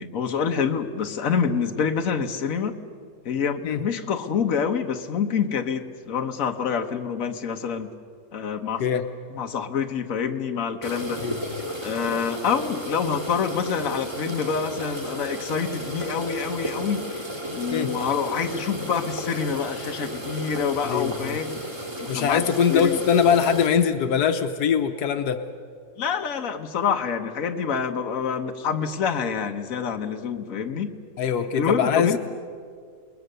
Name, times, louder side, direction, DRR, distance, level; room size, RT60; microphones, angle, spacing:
voice 1, 0.0-2.8 3.2-7.9 8.3-8.8 9.3-11.2 11.8-17.3 17.5-21.6 22.0-22.4 22.7-23.0 26.0-30.9 31.5-32.2, left 6 dB, 65° left, 5 dB, 1.5 m, -27 dB
sound 1, 10.8-23.7, equal, 15° right, 2.3 m, -33 dB
voice 2, 20.8-21.4 22.1-25.5 31.2-32.2, left 7 dB, 85° left, 8 dB, 1.5 m, -22 dB
28.5 x 20.5 x 6.8 m, 2.1 s
omnidirectional pair, 1.6 m